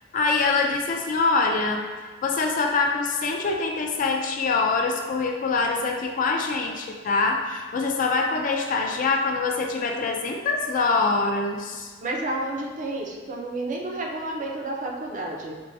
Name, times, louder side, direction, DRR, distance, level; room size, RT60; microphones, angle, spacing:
voice 1, 0.1-1.8 2.2-11.9, left 4 dB, 45° left, 2 dB, 0.3 m, -24 dB
voice 2, 12.0-15.6, right 2 dB, 40° right, 0 dB, 0.4 m, -30 dB
4.5 x 2.0 x 2.6 m, 1.5 s
head